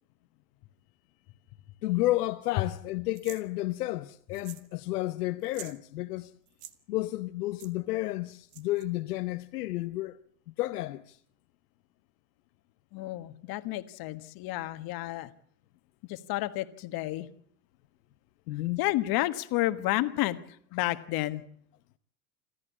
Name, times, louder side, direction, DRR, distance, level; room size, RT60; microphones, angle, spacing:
voice 1, 1.8-6.3 6.9-10.2 10.6-11.2 18.5-18.8, left 17 dB, 75° left, 1.1 m, -31 dB
sound 1, 3.1-3.4 4.3-4.7 5.0-5.1 5.4-5.8 6.5-6.7 7.6-7.7 8.5-8.8, right 13 dB, 55° right, 1.8 m, -47 dB
voice 2, 12.9-15.3 16.1-17.3 18.8-20.4 20.7-21.4, left 17 dB, 50° left, 1.6 m, -30 dB
26.5 x 14.0 x 8.4 m
hypercardioid pair, 95°, 47 cm